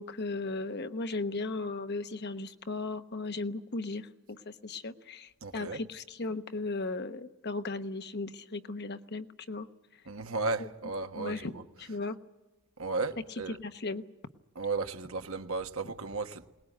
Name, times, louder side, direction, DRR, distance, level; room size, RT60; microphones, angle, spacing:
voice 1, 0.0-9.7 10.6-10.7 11.2-12.2 13.5-14.0, left 3 dB, 50° left, 1.1 m, -36 dB
voice 2, 5.4-5.8 10.1-11.6 12.8-13.6 14.5-16.4, right 3 dB, 70° right, 1.4 m, -34 dB
22.0 x 19.5 x 9.3 m
head